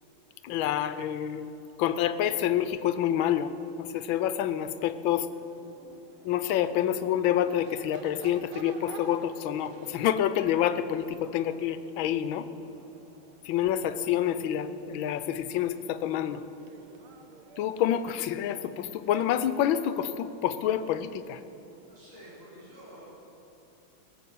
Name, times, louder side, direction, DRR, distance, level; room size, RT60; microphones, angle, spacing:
voice 1, 0.4-1.5 1.8-3.5 3.8-5.3 6.2-12.5 13.4-16.4 17.6-21.4, left 10 dB, 75° left, 13 dB, 1.4 m, -28 dB
Crowd / Race car auto racing / Accelerating revving vroom, 5.1-22.1, right 5 dB, 85° right, 1.8 m, -52 dB
voice 2, 21.8-23.0, equal, 35° right, -8 dB, 4.7 m, -49 dB
17.5 x 7.3 x 8.3 m, 3.0 s
omnidirectional pair, 2.3 m